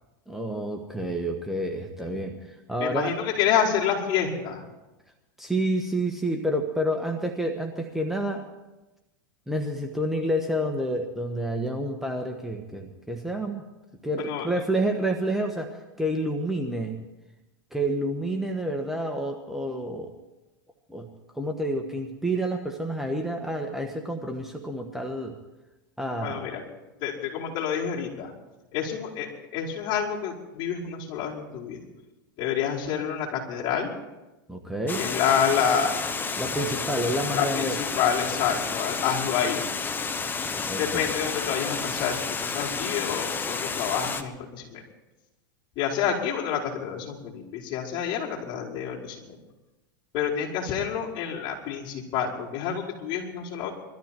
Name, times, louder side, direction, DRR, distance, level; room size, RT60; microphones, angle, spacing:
voice 1, 0.3-3.1 5.4-8.5 9.5-13.6 14.0-17.0 17.7-20.1 20.9-21.1 21.3-25.3 26.0-26.5 34.5-35.0 36.4-37.8 40.7-41.0, right 1 dB, 5° right, 2 dB, 1.4 m, -29 dB
voice 2, 2.8-4.6 14.2-14.5 26.2-26.6 27.0-28.3 28.7-31.8 32.4-33.9 35.0-36.1 37.3-39.6 40.8-44.8 45.8-49.4 50.1-53.7, left 8 dB, 45° left, -4 dB, 5.2 m, -28 dB
Water, 34.9-44.2, left 5 dB, 15° left, 1.1 m, -31 dB
22.0 x 14.0 x 4.6 m, 1.0 s
hypercardioid pair, 110°, 12 cm